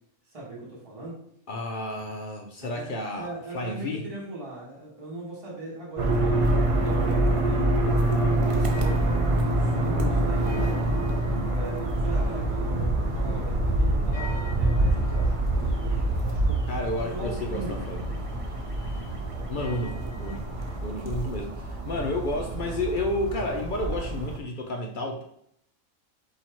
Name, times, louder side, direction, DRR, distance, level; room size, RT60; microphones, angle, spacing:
voice 1, 0.3-1.2 2.6-6.5 6.8-7.9 8.4-10.9 11.4-16.6 17.0-18.0 19.3-20.2, right 2 dB, 30° right, -6 dB, 1.4 m, -40 dB
voice 2, 1.5-4.0 16.7-18.2 19.5-25.2, left 1 dB, 60° left, 2 dB, 0.5 m, -31 dB
sound 1, 6.0-24.4, right 1 dB, 55° right, 0.3 m, -26 dB
sound 2, 8.3-20.9, left 1 dB, 40° left, 1.3 m, -38 dB
4.3 x 2.8 x 4.3 m, 0.73 s
omnidirectional pair, 1.3 m